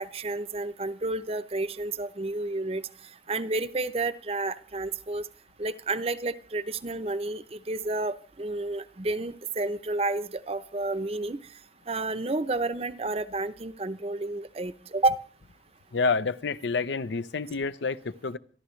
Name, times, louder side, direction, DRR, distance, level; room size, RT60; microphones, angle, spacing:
voice 1, 0.0-2.8 3.3-5.2 5.6-11.4 11.9-15.2, right 2 dB, 35° right, 12 dB, 0.7 m, -30 dB
voice 2, 15.9-18.4, left 4 dB, 80° left, 15 dB, 0.6 m, -28 dB
27.5 x 11.5 x 3.2 m, 0.43 s
head